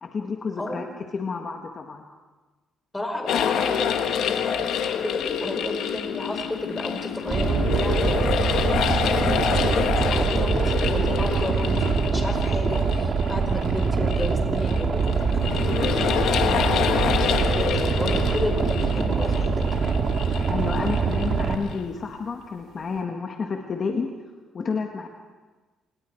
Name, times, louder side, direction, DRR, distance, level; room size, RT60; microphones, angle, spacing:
voice 1, 0.0-0.8 1.1-2.0 20.5-24.2 24.5-25.1, left 5 dB, 45° left, 3 dB, 1.6 m, -30 dB
voice 2, 2.9-19.5, left 1 dB, 15° left, 3 dB, 5.1 m, -33 dB
sound 1, 3.3-21.9, left 8 dB, 80° left, 1.5 m, -27 dB
Boat Water vehicle, 7.3-21.5, right 5 dB, 50° right, 2.1 m, -24 dB
28.0 x 20.0 x 4.7 m, 1.3 s
cardioid pair, 90°, 0 cm